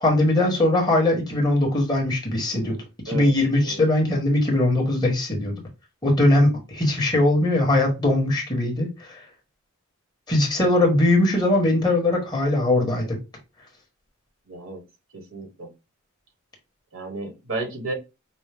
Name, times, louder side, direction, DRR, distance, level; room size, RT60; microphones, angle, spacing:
voice 1, 0.0-2.8 3.0-5.6 6.0-9.2 10.3-13.2, left 1 dB, 20° left, 1.2 m, -20 dB
voice 2, 14.5-14.8 15.1-15.7 16.9-17.9, right 2 dB, 85° right, 1.3 m, -32 dB
5.3 x 2.1 x 3.4 m
head